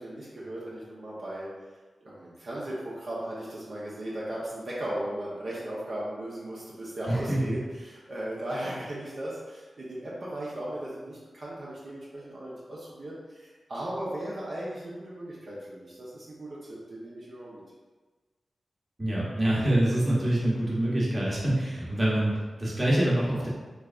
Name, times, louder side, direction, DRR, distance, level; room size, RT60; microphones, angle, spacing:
voice 1, 0.0-1.5 2.0-17.6, right 1 dB, 55° right, -7 dB, 0.7 m, -37 dB
voice 2, 7.1-7.4 19.0-23.5, right 1 dB, 25° right, -6 dB, 1.0 m, -25 dB
3.5 x 3.2 x 2.4 m, 1.3 s
wide cardioid pair, 120°, 0 cm